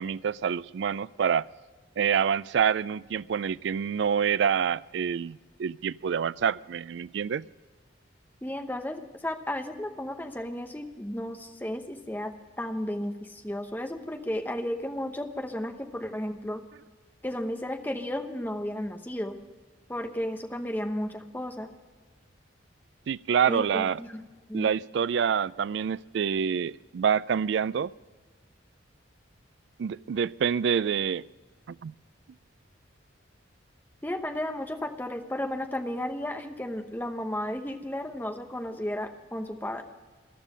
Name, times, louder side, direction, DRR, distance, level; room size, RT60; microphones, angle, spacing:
voice 1, 0.0-1.5 2.0-7.5 23.1-24.0 24.5-27.9 29.8-31.2 31.7-31.9, right 7 dB, 65° right, 20 dB, 0.3 m, -27 dB
voice 2, 8.4-16.6 17.2-19.4 19.9-21.7 23.4-24.2 24.5-24.7 34.0-39.8, left 1 dB, 10° left, 6 dB, 0.9 m, -33 dB
14.5 x 12.0 x 5.5 m, 1.4 s
head